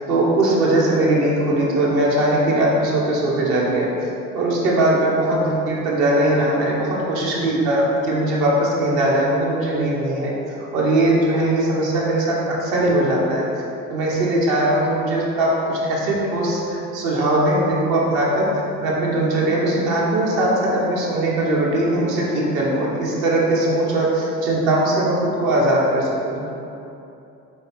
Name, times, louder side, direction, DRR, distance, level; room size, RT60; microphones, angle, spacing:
voice 1, 0.1-3.9 4.3-13.4 13.9-26.5, right 1 dB, 55° right, -4 dB, 0.9 m, -20 dB
4.2 x 2.7 x 3.3 m, 2.8 s
figure-of-eight pair, 55°, 44 cm